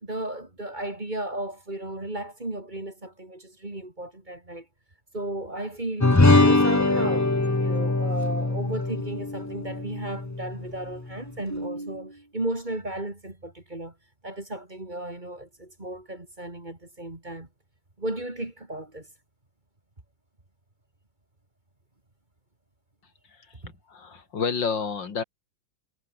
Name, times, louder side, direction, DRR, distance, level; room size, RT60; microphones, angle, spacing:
voice 1, 0.0-4.7 5.1-7.3 7.6-13.9 14.2-17.5 18.0-19.1, right 1 dB, 25° right, 3.2 m, -34 dB
sound 1, 6.0-10.7, left 2 dB, 30° left, 0.3 m, -22 dB
voice 2, 23.3-25.2, left 5 dB, 70° left, 2.9 m, -30 dB
omnidirectional pair, 2.1 m